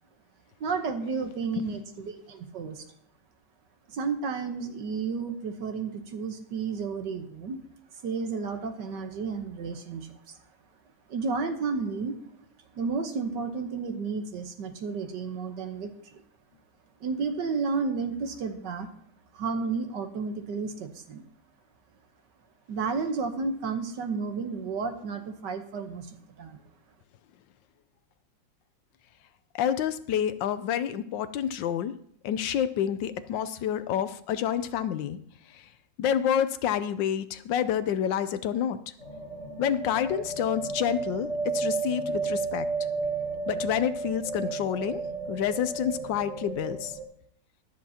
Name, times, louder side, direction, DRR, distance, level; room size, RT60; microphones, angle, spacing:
voice 1, 0.6-2.9 3.9-7.6 8.0-10.4 11.1-12.2 12.7-16.2 17.0-18.9 19.3-21.3 22.7-26.1 26.4-26.6, right 4 dB, 70° right, 6 dB, 1.7 m, -32 dB
voice 2, 1.4-1.8 29.5-31.9 32.2-35.2 35.5-35.7 36.0-38.8 39.6-42.7 43.5-45.0 45.3-47.0, left 9 dB, 80° left, 12 dB, 1.3 m, -28 dB
sound 1, 39.0-47.0, right 4 dB, 35° right, 2.3 m, -33 dB
23.0 x 7.8 x 2.8 m, 0.66 s
omnidirectional pair, 2.0 m